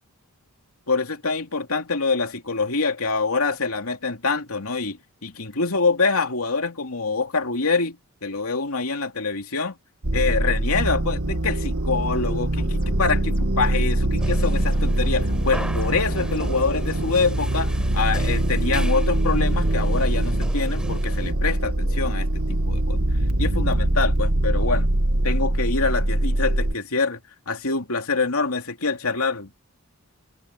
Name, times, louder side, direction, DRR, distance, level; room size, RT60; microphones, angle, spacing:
voice 1, 0.9-9.8 10.1-23.0 23.4-24.9 25.2-27.2 27.5-29.5, left 4 dB, 75° left, 2.9 m, -25 dB
sound 1, 10.0-26.7, right 1 dB, 75° right, 1.8 m, -23 dB
sound 2, 12.6-17.0, left 1 dB, 40° left, 2.1 m, -39 dB
sound 3, 14.2-21.3, equal, 5° right, 6.7 m, -36 dB
head